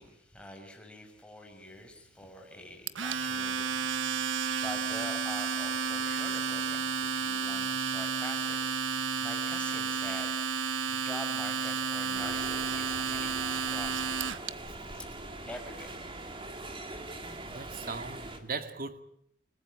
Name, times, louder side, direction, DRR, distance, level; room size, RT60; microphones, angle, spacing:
voice 1, 0.0-8.6 9.2-10.3 10.9-14.0 14.9-15.1 15.5-16.0, left 1 dB, 5° left, 6.0 m, -45 dB
Domestic sounds home sounds, 2.9-14.5, right 5 dB, 80° right, 1.1 m, -32 dB
sound 1, 12.1-18.4, right 2 dB, 30° right, 2.9 m, -42 dB
voice 2, 17.5-19.0, right 4 dB, 50° right, 2.1 m, -38 dB
29.0 x 19.5 x 8.6 m
head